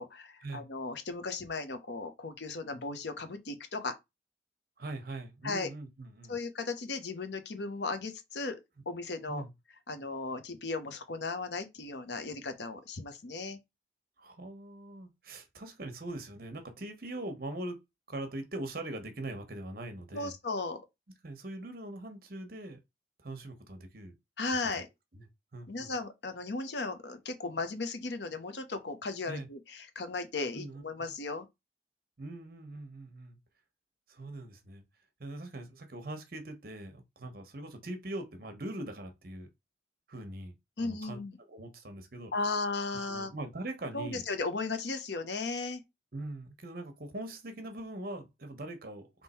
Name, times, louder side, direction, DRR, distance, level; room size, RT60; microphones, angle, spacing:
voice 1, 0.0-3.9 5.4-5.7 6.3-8.6 8.9-9.4 9.9-13.6 20.1-20.8 24.4-24.9 25.7-31.5 40.8-41.4 42.3-43.3 43.9-45.8, left 3 dB, 70° left, 0.9 m, -36 dB
voice 2, 4.8-6.4 9.3-9.5 14.2-17.8 18.1-20.3 21.2-22.8 23.2-24.1 25.1-25.3 25.5-25.9 29.3-29.5 30.6-30.8 32.2-33.4 34.1-34.8 35.2-39.5 40.1-41.2 41.5-42.3 43.1-44.2 46.1-49.2, right 1 dB, 55° right, 1.0 m, -42 dB
3.7 x 2.9 x 4.3 m
head